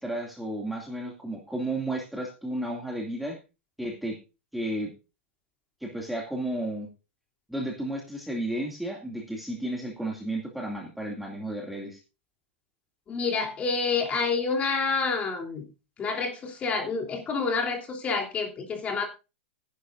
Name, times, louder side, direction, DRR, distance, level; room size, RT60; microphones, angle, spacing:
voice 1, 0.0-3.4 3.8-4.2 4.5-4.9 5.8-6.9 7.5-12.0, right 1 dB, ahead, -1 dB, 2.4 m, -33 dB
voice 2, 13.1-15.7 16.0-19.1, left 4 dB, 20° left, 3 dB, 3.2 m, -28 dB
16.0 x 10.5 x 2.6 m, 0.29 s
hypercardioid pair, 150°, 7 cm